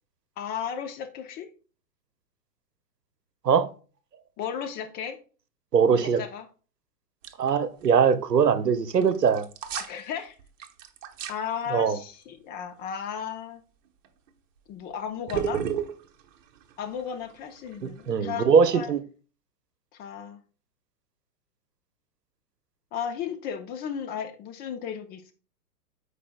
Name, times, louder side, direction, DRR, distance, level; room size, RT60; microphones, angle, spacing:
voice 1, 0.4-1.5 4.4-5.2 6.0-6.5 9.8-10.3 11.3-13.6 14.7-15.6 16.8-18.9 19.9-20.4 22.9-25.3, left 8 dB, 20° left, 0.6 m, -34 dB
voice 2, 5.7-6.2 7.4-9.5 11.7-12.0 17.8-19.0, right 6 dB, 85° right, 0.9 m, -21 dB
sound 1, 7.2-7.5 7.8-7.9 9.0-10.0 10.4-11.4 14.0-14.3 15.3-18.2, right 9 dB, 50° right, 1.1 m, -33 dB
13.5 x 4.9 x 2.2 m
hypercardioid pair, 115°, 47 cm